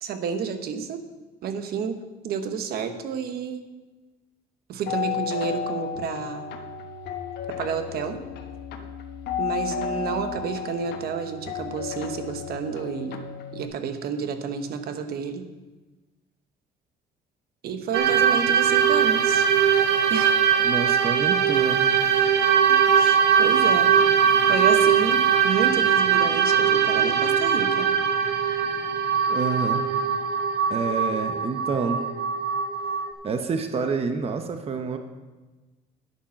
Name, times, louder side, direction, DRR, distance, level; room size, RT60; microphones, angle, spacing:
voice 1, 0.0-1.0 1.4-2.0 2.2-3.6 4.7-6.6 7.5-8.2 9.4-13.3 13.5-15.5 17.6-19.5 20.1-20.4 22.7-24.0 24.5-27.9, right 6 dB, 65° right, 8 dB, 1.1 m, -30 dB
sound 1, 4.9-13.7, left 8 dB, 80° left, 1.2 m, -33 dB
sound 2, 17.9-33.1, right 7 dB, 90° right, 1.3 m, -21 dB
voice 2, 20.6-21.9 29.3-29.8 30.7-32.0 33.2-35.0, right 5 dB, 35° right, 6 dB, 0.9 m, -28 dB
10.5 x 8.7 x 5.8 m, 1.2 s
cardioid pair, 110°, 17 cm